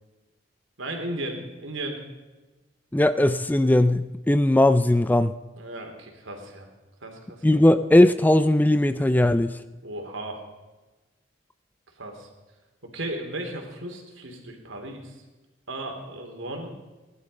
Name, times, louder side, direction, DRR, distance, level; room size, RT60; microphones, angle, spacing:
voice 1, 0.8-2.0 5.5-6.7 7.0-7.6 9.8-10.4 12.0-12.3 12.9-15.2 15.7-16.7, right 1 dB, 70° right, 3 dB, 3.1 m, -35 dB
voice 2, 2.9-5.3 7.4-9.6, left 1 dB, 10° left, 12 dB, 0.4 m, -19 dB
18.0 x 11.5 x 5.4 m, 1.2 s
head